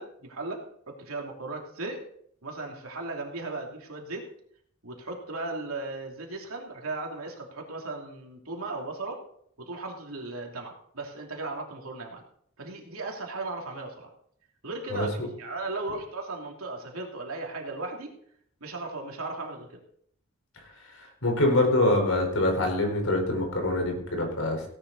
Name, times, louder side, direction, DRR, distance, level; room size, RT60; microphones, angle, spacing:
voice 1, 0.0-2.0 2.4-4.3 4.8-9.2 9.6-12.2 12.6-14.1 14.6-18.1 18.6-19.8, right 2 dB, 90° right, 1 dB, 2.9 m, -36 dB
voice 2, 14.9-15.3 21.0-24.7, left 1 dB, 80° left, 3 dB, 4.5 m, -25 dB
17.0 x 10.0 x 4.1 m, 0.67 s
head